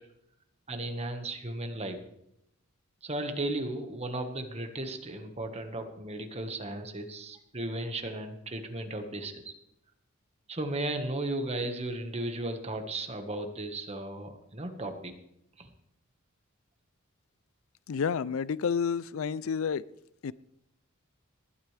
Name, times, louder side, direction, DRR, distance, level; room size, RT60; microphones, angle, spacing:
voice 1, 0.7-2.0 3.0-9.5 10.5-15.1 15.6-15.7, right 1 dB, 30° right, 6 dB, 1.5 m, -35 dB
voice 2, 17.9-19.8 20.2-20.3, left 6 dB, 75° left, 19 dB, 0.4 m, -30 dB
19.5 x 12.5 x 3.4 m, 0.78 s
head